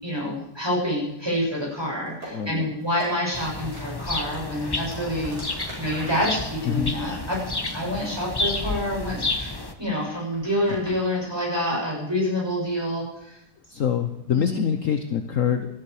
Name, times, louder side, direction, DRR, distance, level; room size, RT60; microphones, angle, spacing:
voice 1, 0.0-7.4 7.7-9.5 9.8-13.4 14.3-14.6, left 1 dB, 15° right, -4 dB, 7.5 m, -27 dB
sound 1, 2.2-2.3 2.8-3.1 3.7-3.8 4.3-8.2 8.5-8.8 9.1-11.0, left 1 dB, 60° right, 6.6 m, -40 dB
voice 2, 2.3-2.7 6.7-6.9 10.9-11.0 13.7-15.7, left 8 dB, 55° left, 7 dB, 1.2 m, -25 dB
sound 2, 3.3-9.7, left 2 dB, 20° left, 0.8 m, -31 dB
18.5 x 14.0 x 4.9 m, 0.80 s
omnidirectional pair, 1.8 m